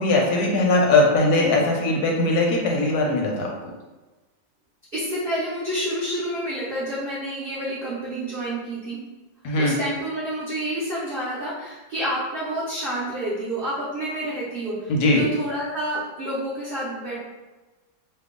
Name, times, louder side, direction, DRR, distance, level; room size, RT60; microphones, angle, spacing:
voice 1, 0.0-3.7 9.4-9.8 14.9-15.2, left 2 dB, 70° left, 0 dB, 1.0 m, -20 dB
voice 2, 4.9-9.0 9.6-17.2, right 1 dB, 55° right, -9 dB, 0.6 m, -29 dB
2.9 x 2.2 x 3.6 m, 1.2 s
omnidirectional pair, 2.0 m